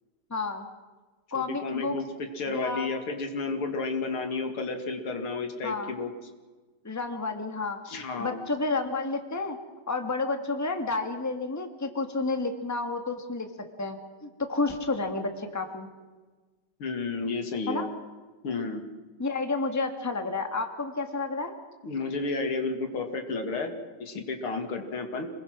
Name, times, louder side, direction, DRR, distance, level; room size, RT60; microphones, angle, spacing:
voice 1, 0.3-0.6 1.3-2.0 2.5-2.9 5.6-5.9 6.8-9.6 9.9-15.9 17.7-17.9 19.2-21.5, left 3 dB, 10° left, 6 dB, 1.6 m, -31 dB
voice 2, 1.3-6.1 7.9-8.4 16.8-17.8 18.4-18.8 21.8-25.3, left 3 dB, 80° left, 5 dB, 3.1 m, -32 dB
27.0 x 21.0 x 6.2 m, 1.3 s
omnidirectional pair, 2.3 m